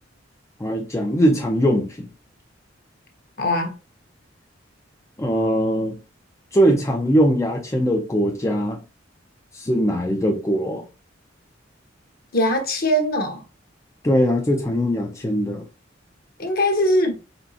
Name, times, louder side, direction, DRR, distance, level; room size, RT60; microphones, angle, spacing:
voice 1, 0.6-2.1 5.2-6.0 6.5-8.8 9.5-10.8 14.0-15.6, equal, 15° left, 0.5 m, -21 dB
voice 2, 3.4-3.7 12.3-13.4 16.4-17.2, equal, 50° left, 1.2 m, -21 dB
4.3 x 4.1 x 2.8 m
head